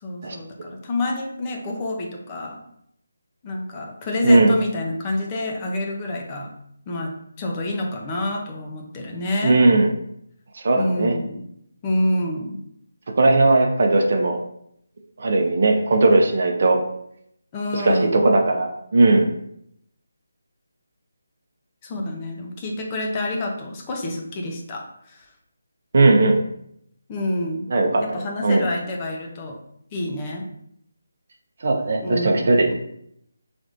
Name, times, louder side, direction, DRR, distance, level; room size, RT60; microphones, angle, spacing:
voice 1, 0.0-2.6 3.4-6.5 6.9-9.6 10.8-11.5 11.8-12.6 17.5-18.2 21.8-25.3 27.1-27.7 28.0-29.6 29.9-30.5 32.0-32.7, left 1 dB, 20° left, 1 dB, 0.7 m, -28 dB
voice 2, 4.2-4.6 9.4-9.9 10.5-11.2 13.1-14.4 15.2-16.8 17.7-19.4 25.9-26.4 27.7-28.0 28.4-28.7 31.6-32.7, right 2 dB, 50° right, 3 dB, 0.7 m, -18 dB
5.8 x 3.4 x 2.5 m, 0.73 s
figure-of-eight pair, 165°, 0 cm